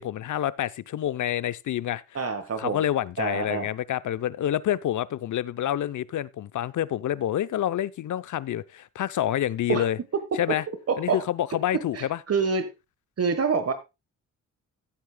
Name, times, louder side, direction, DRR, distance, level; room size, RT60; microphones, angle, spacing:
voice 1, 0.0-2.3 2.6-10.0 10.4-10.6 11.0-12.2, left 11 dB, 65° left, 0.7 m, -28 dB
voice 2, 2.1-2.8 3.2-3.7 9.7-9.8 10.9-11.2 11.9-12.7 13.2-13.7, right 5 dB, 50° right, 1.4 m, -26 dB
15.5 x 8.5 x 2.3 m
cardioid pair, 85°, 32 cm